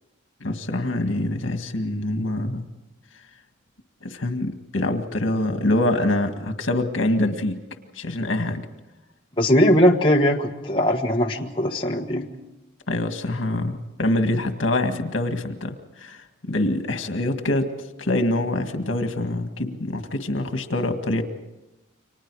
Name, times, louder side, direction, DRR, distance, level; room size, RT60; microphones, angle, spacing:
voice 1, 0.4-2.6 4.0-7.6 7.9-8.6 12.9-17.7 18.0-21.2, left 1 dB, 80° left, 7 dB, 1.9 m, -25 dB
voice 2, 9.4-12.3, equal, 25° left, 0 dB, 1.4 m, -20 dB
29.5 x 25.0 x 4.8 m, 0.99 s
head